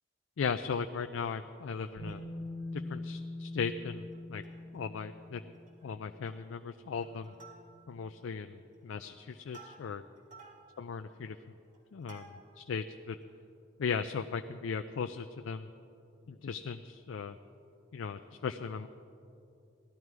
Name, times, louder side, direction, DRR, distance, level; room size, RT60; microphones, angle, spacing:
voice 1, 0.4-2.2 2.7-4.4 4.7-5.4 5.8-7.4 7.9-10.0 10.8-11.4 11.9-13.2 13.8-15.7 16.3-17.4 17.9-18.9, left 5 dB, 80° left, 8 dB, 0.4 m, -37 dB
Plucked string instrument, 1.9-2.7 3.1-3.2 3.4-3.7 4.1-4.8 5.1-5.2 5.5-5.9 6.3-6.6 7.0-8.1 8.6-12.7 13.2-13.3, right 4 dB, 40° right, 2.2 m, -56 dB
Bass guitar, 2.0-5.9 7.0-7.1, left 2 dB, 15° left, 2.8 m, -43 dB
17.0 x 12.5 x 4.7 m, 2.7 s
head